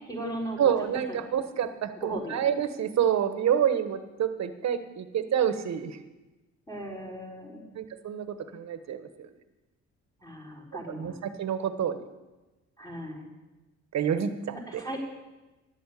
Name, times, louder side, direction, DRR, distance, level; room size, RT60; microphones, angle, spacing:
voice 1, 0.0-0.7 1.1-1.2 2.0-2.4 6.7-7.6 10.2-11.2 12.8-13.3 14.7-15.0, right 1 dB, 10° left, -2 dB, 4.4 m, -37 dB
voice 2, 0.6-6.0 7.7-9.1 11.0-12.0 13.9-14.3 14.7-14.8, right 9 dB, 60° right, 10 dB, 1.2 m, -28 dB
11.5 x 8.1 x 8.5 m, 1.1 s
cardioid pair, 90°, 30 cm